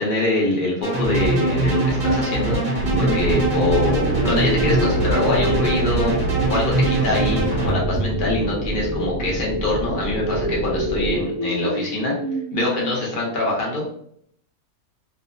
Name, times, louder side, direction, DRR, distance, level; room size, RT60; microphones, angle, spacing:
voice 1, 0.0-12.1 12.5-13.9, left 2 dB, 50° left, -3 dB, 0.6 m, -24 dB
sound 1, 0.8-7.7, right 2 dB, 25° right, 0.9 m, -22 dB
sound 2, 2.8-11.2, right 1 dB, 85° right, 0.4 m, -27 dB
sound 3, 3.0-13.0, equal, 70° left, 1.0 m, -28 dB
2.6 x 2.0 x 2.5 m, 0.66 s
omnidirectional pair, 1.6 m